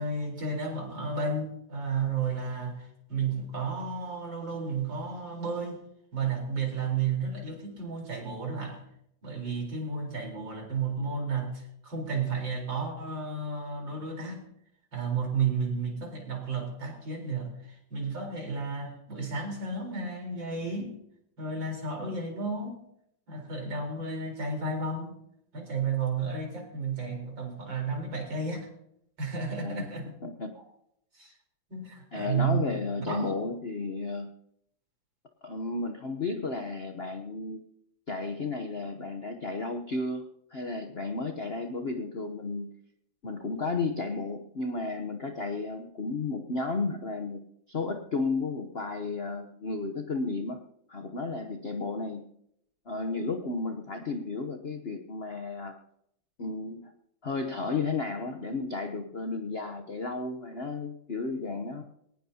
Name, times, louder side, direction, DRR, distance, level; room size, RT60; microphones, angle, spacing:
voice 1, 0.0-5.8 6.1-8.8 9.2-14.4 14.9-20.9 21.4-22.8 23.3-25.2 25.5-28.7 29.2-30.1 30.6-30.7 31.1-31.3 31.7-32.6 33.1-33.3, right 4 dB, 60° right, 0 dB, 4.9 m, -32 dB
voice 2, 30.2-30.6 32.1-34.3 35.4-37.6 38.1-42.7 43.2-50.6 50.9-52.3 52.9-55.8 56.4-56.9 57.2-61.8, left 3 dB, 45° left, 5 dB, 0.8 m, -33 dB
21.5 x 19.0 x 2.9 m, 0.75 s
omnidirectional pair, 2.3 m